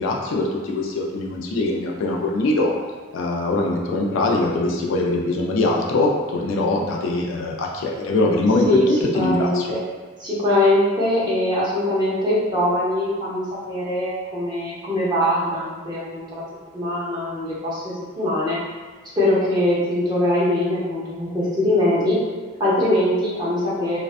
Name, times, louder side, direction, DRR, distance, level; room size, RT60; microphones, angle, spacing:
voice 1, 0.0-2.7 3.1-9.7, left 2 dB, 70° left, -1 dB, 0.4 m, -22 dB
voice 2, 9.1-9.8 10.2-16.4 16.7-18.6 19.2-24.0, left 1 dB, 20° right, -9 dB, 0.6 m, -22 dB
2.5 x 2.1 x 2.4 m, 1.4 s
head